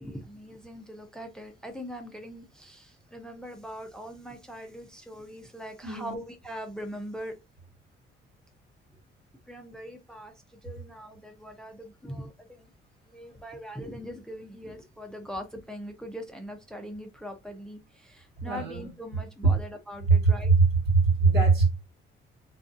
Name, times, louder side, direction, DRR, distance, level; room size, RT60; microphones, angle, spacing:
voice 1, 0.0-7.4 9.5-12.7 13.1-20.5, equal, 5° left, 0.5 m, -41 dB
voice 2, 5.8-6.2 18.4-18.9 19.4-19.5 20.1-20.3 20.6-21.7, right 4 dB, 65° right, 1.2 m, -21 dB
2.4 x 2.3 x 2.5 m
cardioid pair, 90°, 20 cm